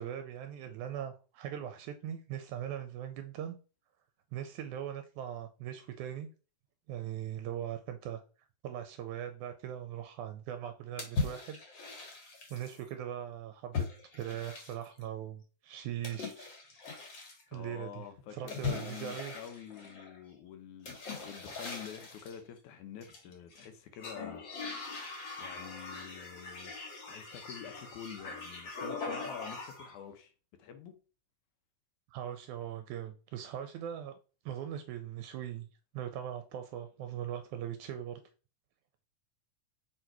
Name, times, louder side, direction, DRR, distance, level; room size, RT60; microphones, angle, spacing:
voice 1, 0.0-3.6 4.3-6.3 6.9-8.2 8.6-11.6 11.9-12.1 12.5-13.9 14.1-16.5 17.5-18.0 18.3-19.3 32.1-34.2 34.5-35.7 35.9-38.2, right 10 dB, 80° right, 1.9 m, -40 dB
sound 1, 11.0-12.8 13.7-15.0 16.0-17.4 18.5-20.2 20.8-22.4 23.0-23.6 24.0-30.0, left 4 dB, 45° left, 1.8 m, -40 dB
voice 2, 17.5-26.7 27.1-30.3 30.6-31.0, left 9 dB, 75° left, 2.2 m, -48 dB
6.3 x 3.8 x 4.6 m
omnidirectional pair, 3.6 m